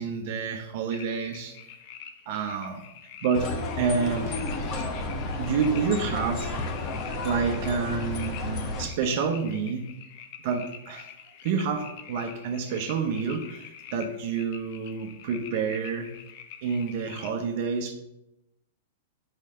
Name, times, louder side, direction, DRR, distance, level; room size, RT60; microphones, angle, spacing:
voice 1, 0.0-1.6 2.3-2.8 3.2-4.4 4.7-4.8 5.4-6.7 7.2-9.9 10.4-11.1 11.4-16.1 16.6-17.9, right 5 dB, 55° right, 4 dB, 0.9 m, -29 dB
sound 1, 0.9-17.3, left 9 dB, 50° left, 0.7 m, -47 dB
sound 2, 3.3-8.9, left 2 dB, 35° left, 1.1 m, -32 dB
5.6 x 4.8 x 6.5 m, 0.88 s
hypercardioid pair, 135°, 0 cm